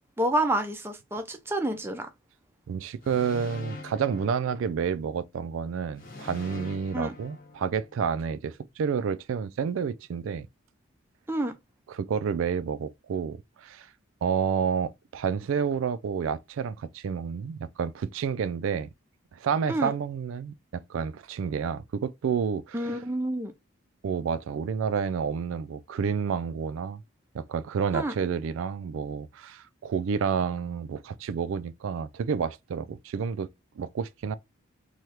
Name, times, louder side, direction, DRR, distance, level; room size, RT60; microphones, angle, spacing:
voice 1, 0.2-2.1 6.9-7.1 11.3-11.5 19.7-19.9 22.7-23.5 27.9-28.1, right 1 dB, 10° right, 0.4 m, -28 dB
voice 2, 2.7-10.5 11.9-13.9 14.2-18.9 19.3-23.0 24.0-27.0 27.3-33.5 33.8-34.4, right 6 dB, 75° right, 0.3 m, -30 dB
sound 1, 3.0-5.2 6.0-8.2, left 3 dB, 45° left, 0.8 m, -44 dB
3.2 x 2.3 x 2.7 m
head